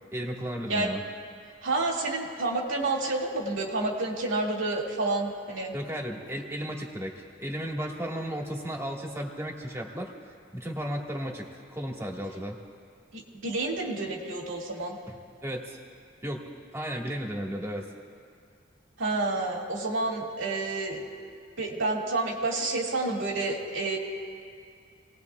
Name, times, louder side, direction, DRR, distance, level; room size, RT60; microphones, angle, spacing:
voice 1, 0.1-1.0 5.7-7.1 7.4-10.1 10.5-12.6 15.4-15.8 16.2-17.9, equal, 15° right, -1 dB, 1.7 m, -34 dB
voice 2, 1.6-5.7 13.1-15.0 19.0-21.0 21.6-24.0, right 2 dB, 80° right, -1 dB, 2.3 m, -29 dB
27.5 x 18.5 x 2.4 m, 2.3 s
head